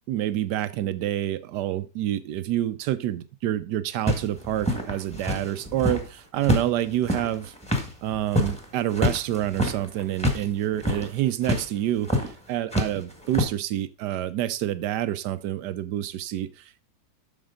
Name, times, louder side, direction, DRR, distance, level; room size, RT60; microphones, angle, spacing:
voice 1, 0.1-7.5 8.0-16.8, right 12 dB, 75° right, 1.3 m, -28 dB
sound 1, 4.1-6.1 6.4-10.4 10.7-11.1 11.4-11.6 12.1-12.3 12.7-13.4, left 1 dB, 5° left, 1.5 m, -26 dB
8.7 x 6.3 x 3.7 m
omnidirectional pair, 1.9 m